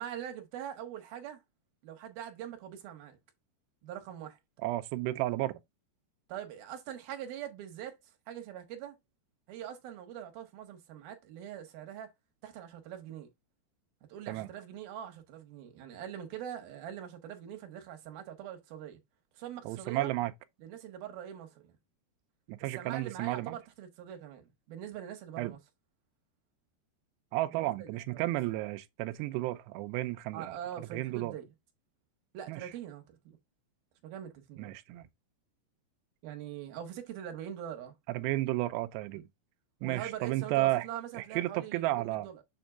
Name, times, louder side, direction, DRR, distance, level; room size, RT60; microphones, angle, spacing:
voice 1, 0.0-1.4 1.8-3.2 3.8-4.4 6.3-8.0 8.3-9.0 9.5-12.1 12.4-13.3 14.1-19.0 19.4-20.1 20.6-21.8 22.7-25.6 27.5-28.3 30.3-31.5 32.3-33.4 34.0-34.7 36.2-37.9 39.1-39.2 39.8-42.4, right 10 dB, 65° right, 2.9 m, -43 dB
voice 2, 4.6-5.6 14.3-14.5 19.7-20.3 22.5-23.6 25.4-25.6 27.3-30.6 30.9-31.3 32.5-32.7 34.6-35.0 38.1-39.2 39.8-40.9 41.2-42.3, right 17 dB, 80° right, 2.7 m, -32 dB
7.9 x 6.3 x 2.4 m
omnidirectional pair, 5.3 m